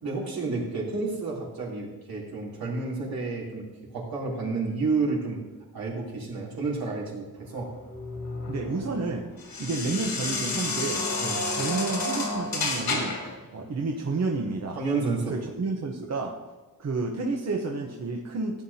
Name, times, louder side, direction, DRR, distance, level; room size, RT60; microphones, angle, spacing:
voice 1, 0.0-3.6 3.9-5.4 5.7-7.7 11.2-11.4 14.7-15.4, right 3 dB, 80° right, -5 dB, 3.3 m, -30 dB
sound 1, 7.5-13.3, left 3 dB, 85° left, 2.9 m, -31 dB
voice 2, 8.5-9.3 9.6-11.1 11.5-13.2 13.5-14.8 15.3-16.3 16.8-18.6, right 3 dB, 45° right, 1 dB, 0.9 m, -30 dB
15.5 x 8.9 x 2.8 m, 1.3 s
wide cardioid pair, 130°, 35 cm